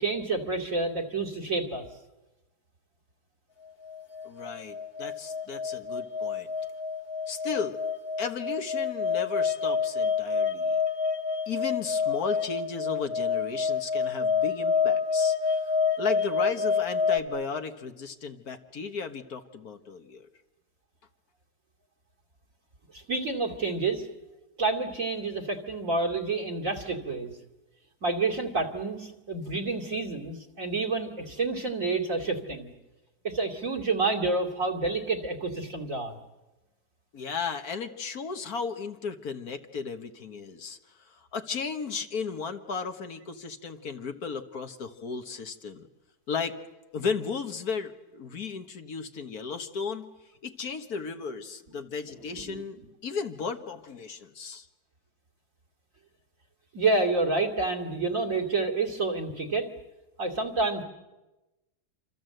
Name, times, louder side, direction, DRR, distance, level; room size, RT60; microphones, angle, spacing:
voice 1, 0.0-1.9 22.9-24.1 24.6-27.4 28.0-32.7 33.2-36.2 52.3-52.6 56.7-59.7 60.2-60.8, right 3 dB, 55° right, 7 dB, 3.0 m, -29 dB
sound 1, 3.8-17.2, left 5 dB, 40° left, 1.3 m, -28 dB
voice 2, 4.2-6.5 7.3-7.8 8.2-10.8 11.5-20.3 37.1-45.9 46.3-46.6 46.9-50.1 50.4-54.7, left 5 dB, 65° left, 7 dB, 1.9 m, -35 dB
27.5 x 27.0 x 7.9 m, 1.1 s
omnidirectional pair, 1.7 m